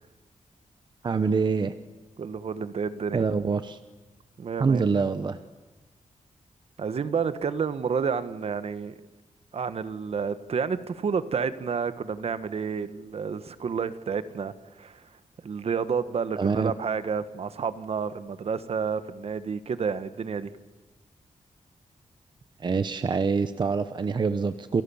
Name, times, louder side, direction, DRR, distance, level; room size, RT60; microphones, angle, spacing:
voice 1, 1.0-1.7 3.1-3.8 4.6-5.4 16.4-16.7 22.6-24.8, right 5 dB, 35° right, 11 dB, 0.9 m, -25 dB
voice 2, 2.2-3.2 4.4-4.8 6.8-8.9 9.5-15.1 15.4-20.5, right 6 dB, 55° right, 13 dB, 1.4 m, -30 dB
29.0 x 28.5 x 7.2 m, 1.1 s
wide cardioid pair, 180°, 13 cm